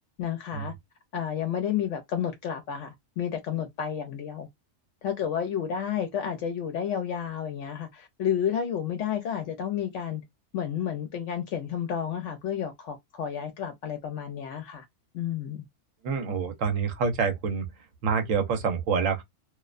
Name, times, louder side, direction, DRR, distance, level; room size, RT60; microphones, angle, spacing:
voice 1, 0.2-0.7 1.1-4.5 5.0-10.2 10.5-14.8 15.1-15.6, left 8 dB, 75° left, 0.9 m, -31 dB
voice 2, 16.0-17.7 18.0-19.2, right 5 dB, 80° right, 1.1 m, -27 dB
2.6 x 2.1 x 2.3 m
omnidirectional pair, 1.3 m